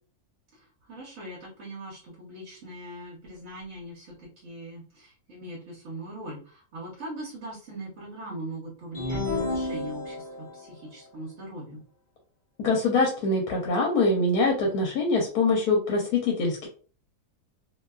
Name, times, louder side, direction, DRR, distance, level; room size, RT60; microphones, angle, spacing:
voice 1, 0.6-11.8, right 1 dB, 55° right, -6 dB, 1.1 m, -40 dB
sound 1, 8.9-10.5, left 2 dB, 40° left, 0.7 m, -30 dB
voice 2, 12.6-16.7, left 3 dB, 75° left, -1 dB, 1.1 m, -24 dB
2.7 x 2.2 x 2.2 m, 0.41 s
omnidirectional pair, 1.7 m